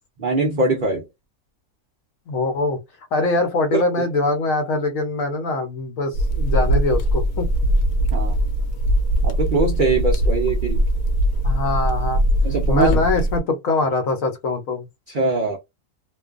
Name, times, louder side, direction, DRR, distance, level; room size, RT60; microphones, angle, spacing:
voice 1, 0.2-1.0 3.7-3.8 8.1-8.4 9.2-10.8 12.4-12.9 15.1-15.6, right 3 dB, 65° right, 0.5 m, -21 dB
voice 2, 2.3-2.8 3.1-7.5 11.4-12.2 12.7-14.9, left 3 dB, 65° left, 1.0 m, -23 dB
sound 1, 6.1-13.4, right 1 dB, 85° left, 1.1 m, -21 dB
2.5 x 2.2 x 2.3 m
omnidirectional pair, 1.6 m